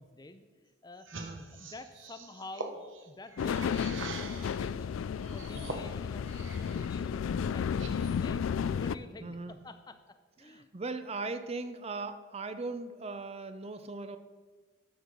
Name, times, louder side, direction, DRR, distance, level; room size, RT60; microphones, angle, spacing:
voice 1, 0.0-5.0 5.3-10.0 10.4-10.7, left 2 dB, 20° left, 9 dB, 0.5 m, -49 dB
sound 1, 1.0-4.7 5.2-6.9 7.3-8.3, right 3 dB, 70° right, 1.0 m, -44 dB
voice 2, 1.1-1.5 9.2-9.6 10.4-14.2, right 3 dB, 30° right, 10 dB, 0.5 m, -39 dB
sound 2, 3.4-9.0, left 7 dB, 75° left, 0.3 m, -33 dB
13.0 x 6.4 x 5.2 m, 1.3 s
head